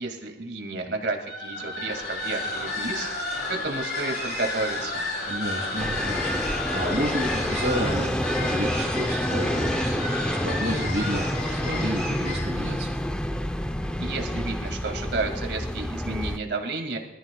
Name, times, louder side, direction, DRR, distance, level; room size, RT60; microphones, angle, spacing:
voice 1, 0.0-5.1 14.0-17.0, right 3 dB, 75° right, 3 dB, 2.3 m, -31 dB
sound 1, 1.3-12.6, left 2 dB, 60° left, 6.1 m, -32 dB
voice 2, 5.3-13.0, equal, 45° right, -8 dB, 3.1 m, -31 dB
sound 2, 5.8-16.4, equal, 5° left, 0.5 m, -28 dB
25.0 x 14.0 x 2.3 m, 0.92 s
head